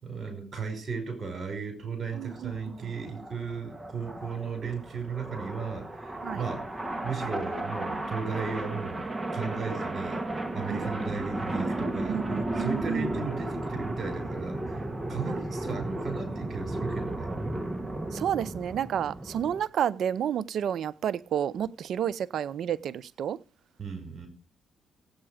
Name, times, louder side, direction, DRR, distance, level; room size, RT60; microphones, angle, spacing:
voice 1, 0.0-6.7 7.0-10.2 10.5-12.2 12.6-14.8 15.1-17.3 23.8-24.3, right 5 dB, 50° right, 5.4 m, -35 dB
sound 1, 2.1-19.6, right 1 dB, 20° right, 1.7 m, -34 dB
voice 2, 2.1-2.5 2.8-2.9 6.2-6.4 10.7-10.9 12.1-13.2 15.3-15.5 18.1-23.4, right 9 dB, 70° right, 0.6 m, -30 dB
16.5 x 8.9 x 4.9 m
cardioid pair, 75°, 0 cm